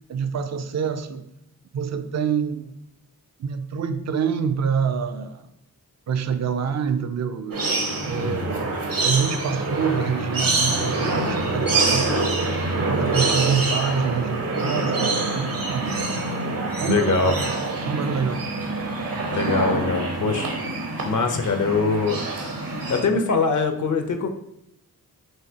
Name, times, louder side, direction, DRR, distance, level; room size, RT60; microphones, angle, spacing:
voice 1, 0.1-1.2 1.7-2.7 3.4-5.5 6.1-7.6 8.0-8.7 9.0-12.3 12.7-16.0 16.8-17.5 17.8-18.5, right 6 dB, 50° right, 9 dB, 0.4 m, -26 dB
sound 1, 7.5-23.0, right 3 dB, 75° right, 1.0 m, -25 dB
voice 2, 8.2-8.5 16.9-17.3 19.3-20.5 21.0-22.2 22.9-24.3, left 4 dB, 55° left, 6 dB, 0.7 m, -23 dB
5.6 x 2.9 x 2.8 m, 0.79 s
cardioid pair, 55°, 35 cm